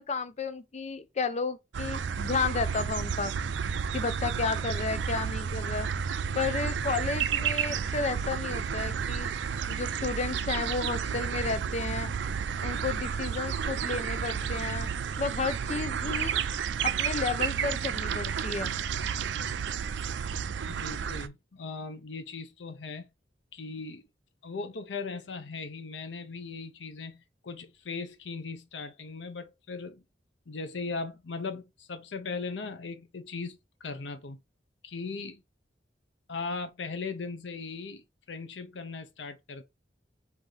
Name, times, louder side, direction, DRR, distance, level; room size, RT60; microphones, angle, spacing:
voice 1, 0.0-3.3 3.9-5.9 6.3-9.3 9.7-12.1 12.6-14.9 15.2-16.4 16.8-18.8, left 4 dB, 40° left, 0.5 m, -32 dB
sound 1, 1.7-21.3, right 7 dB, 80° right, 0.4 m, -31 dB
voice 2, 20.6-23.1 23.5-24.1 24.4-30.0 30.5-34.4 34.8-35.4 36.3-39.6, left 4 dB, 90° left, 0.7 m, -38 dB
4.7 x 2.7 x 3.9 m
head